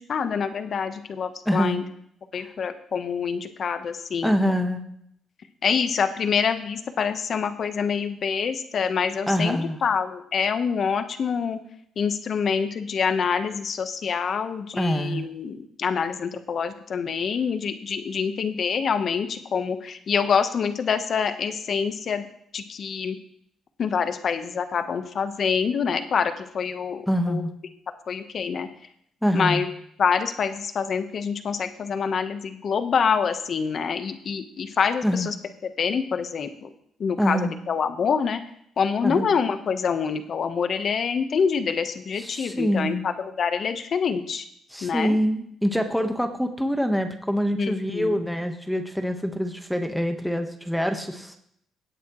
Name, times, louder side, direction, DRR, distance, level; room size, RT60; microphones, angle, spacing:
voice 1, 0.0-1.8 2.3-4.4 5.6-11.6 12.0-22.2 22.5-23.2 23.8-27.4 28.1-28.7 29.3-29.7 30.0-35.3 35.8-36.7 37.0-38.4 38.8-44.5 44.8-45.2 47.6-48.2, left 6 dB, 55° left, 9 dB, 1.1 m, -26 dB
voice 2, 1.4-1.8 2.4-2.5 4.2-4.8 9.3-9.8 14.7-15.3 27.1-27.5 29.2-29.6 35.0-35.3 37.2-37.5 39.0-39.3 42.2-43.0 44.7-51.4, equal, ahead, 6 dB, 1.3 m, -25 dB
17.0 x 8.4 x 3.2 m, 0.70 s
cardioid pair, 90°, 0 cm